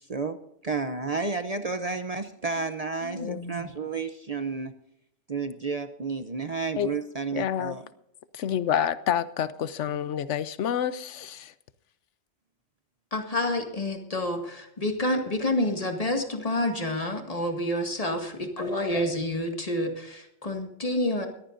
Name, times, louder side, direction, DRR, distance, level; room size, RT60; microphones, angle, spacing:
voice 1, 0.1-4.7 5.3-7.8, right 4 dB, 40° right, 9 dB, 0.7 m, -31 dB
voice 2, 3.0-3.7 13.1-21.3, left 1 dB, 30° left, 4 dB, 2.0 m, -29 dB
voice 3, 7.3-7.8 8.4-11.5, left 9 dB, 90° left, 15 dB, 1.1 m, -28 dB
21.0 x 14.5 x 2.6 m, 0.79 s
omnidirectional pair, 1.2 m